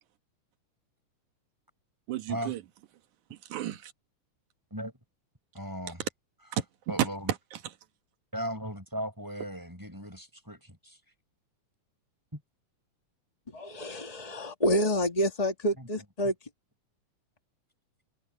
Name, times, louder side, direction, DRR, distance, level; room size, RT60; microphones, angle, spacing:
voice 1, 2.1-2.6 3.3-3.9 6.0-6.1 6.5-7.7, right 11 dB, 70° right, 2.7 m, -32 dB
voice 2, 5.5-6.0 6.9-7.3 8.3-11.0 12.3-12.4 15.8-15.9, equal, 5° right, 6.2 m, -37 dB
voice 3, 13.5-16.3, equal, 25° left, 0.9 m, -28 dB
open air
omnidirectional pair, 3.6 m